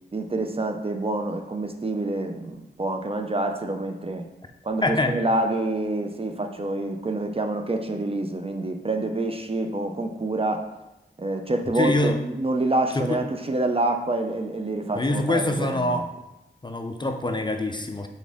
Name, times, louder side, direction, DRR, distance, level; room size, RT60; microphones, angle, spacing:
voice 1, 0.1-4.3 4.6-10.7 11.2-16.1, right 2 dB, 30° right, 5 dB, 0.4 m, -27 dB
voice 2, 4.8-5.1 11.8-12.2 12.9-13.2 14.9-16.1 16.6-18.1, left 2 dB, 25° left, 4 dB, 0.5 m, -24 dB
4.1 x 3.6 x 3.5 m, 0.95 s
wide cardioid pair, 65°, 19 cm